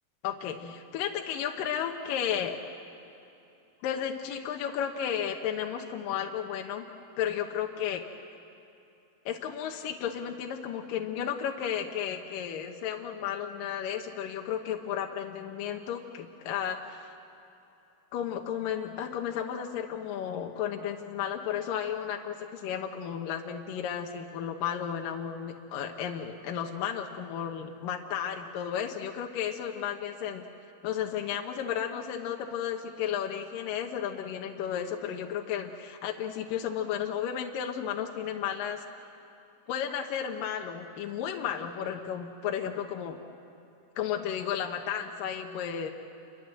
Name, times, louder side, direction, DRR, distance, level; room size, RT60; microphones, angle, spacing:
voice 1, 0.2-2.6 3.8-6.9 7.2-8.0 9.3-17.1 18.1-30.4 30.8-38.8 39.7-43.2 44.0-45.9, left 9 dB, 75° left, 2 dB, 2.7 m, -33 dB
28.5 x 23.5 x 7.7 m, 2.9 s
omnidirectional pair, 4.2 m